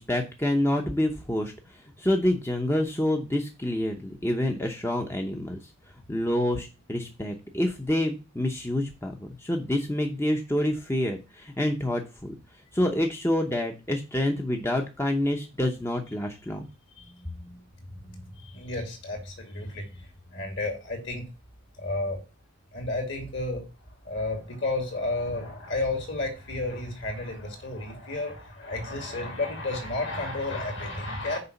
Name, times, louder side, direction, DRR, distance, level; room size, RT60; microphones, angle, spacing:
voice 1, 0.0-5.6 6.1-12.3 12.7-16.6, left 1 dB, 10° left, 3 dB, 0.7 m, -27 dB
voice 2, 17.0-21.3 21.7-22.2 22.7-23.6 24.0-31.4, left 2 dB, 55° left, 4 dB, 2.7 m, -32 dB
6.7 x 4.9 x 7.0 m, 0.30 s
head